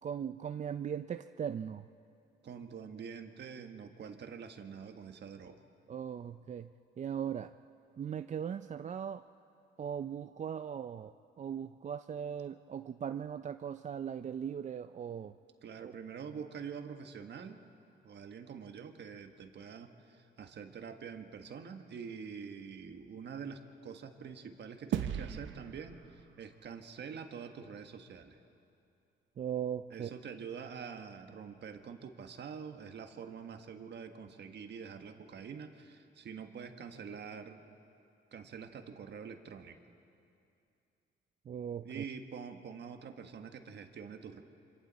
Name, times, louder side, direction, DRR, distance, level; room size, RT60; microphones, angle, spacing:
voice 1, 0.0-1.9 5.9-7.5 8.0-9.2 9.8-15.4 15.8-15.9 29.4-30.1 41.5-42.0, right 8 dB, 40° right, 10 dB, 0.4 m, -39 dB
voice 2, 2.4-5.6 15.6-17.6 18.0-28.4 29.9-37.7 38.3-39.8 41.8-44.4, right 6 dB, 60° right, 6 dB, 1.5 m, -46 dB
sound 1, 24.9-27.5, right 9 dB, 75° right, 0.8 m, -39 dB
25.5 x 25.0 x 4.1 m, 2.6 s
cardioid pair, 90°, 20 cm